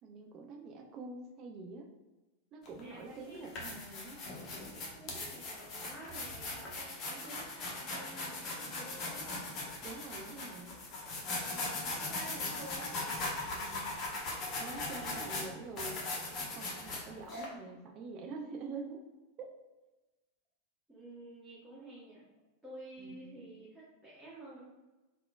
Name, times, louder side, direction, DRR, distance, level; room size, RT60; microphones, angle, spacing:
voice 1, 0.0-1.9 2.5-4.2 9.8-10.7 13.5-13.9 14.6-16.0 16.5-19.0 19.4-19.5 23.0-23.5, right 3 dB, 35° right, 2 dB, 0.3 m, -46 dB
sound 1, 2.6-2.8 3.3-17.4, left 2 dB, 35° left, 0.7 m, -39 dB
voice 2, 2.8-3.5 4.7-9.4 11.2-12.9 14.7-15.8 20.9-22.2 22.6-24.6, right 1 dB, 10° right, -9 dB, 0.9 m, -51 dB
3.4 x 2.3 x 2.2 m, 1.1 s
figure-of-eight pair, 90°, 0 cm